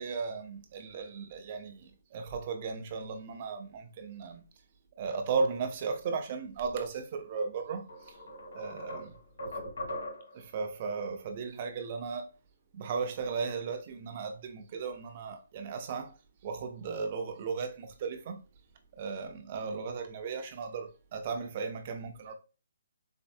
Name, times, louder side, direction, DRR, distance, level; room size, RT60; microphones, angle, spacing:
voice 1, 0.0-4.4 5.0-8.1 8.5-9.1 10.3-12.3 12.7-16.1 16.4-18.4 18.9-22.3, right 5 dB, 25° right, 0.4 m, -36 dB
sound 1, 7.3-7.4 7.9-10.5, equal, 70° left, 1.7 m, -40 dB
4.2 x 2.0 x 2.6 m
hypercardioid pair, 180°, 0 cm